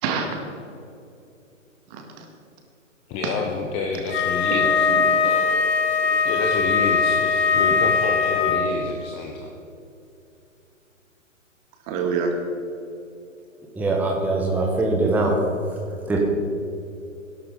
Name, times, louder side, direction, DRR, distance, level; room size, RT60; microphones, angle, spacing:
voice 1, 0.0-0.5 1.9-2.2 3.2-3.3 4.5-5.2 6.0-6.2 11.9-12.3, right 5 dB, 30° right, 3 dB, 1.8 m, -27 dB
voice 2, 3.1-4.9 5.2-5.7 6.2-9.5, left 4 dB, 15° left, 2 dB, 0.7 m, -29 dB
Wind instrument woodwind instrument, 4.1-8.8, left 5 dB, 50° left, 1.5 m, -21 dB
voice 3, 13.7-15.3 16.1-16.2, right 2 dB, 5° right, -1 dB, 1.2 m, -22 dB
18.5 x 11.0 x 4.0 m, 2.7 s
figure-of-eight pair, 125°, 39 cm